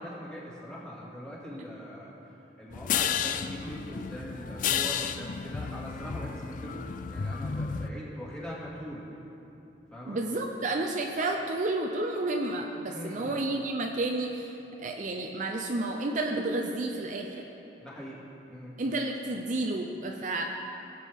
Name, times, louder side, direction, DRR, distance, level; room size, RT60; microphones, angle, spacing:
voice 1, 0.0-2.2 2.6-9.1 9.9-10.2 12.9-13.3 14.8-14.9 17.8-18.2 18.5-18.8, equal, 5° left, -7 dB, 2.1 m, -42 dB
sound 1, 2.7-7.9, left 7 dB, 45° left, 0.4 m, -32 dB
voice 2, 10.1-14.5 14.8-17.5 18.8-20.4, right 2 dB, 45° right, 2 dB, 0.5 m, -31 dB
17.0 x 7.6 x 3.6 m, 2.9 s
head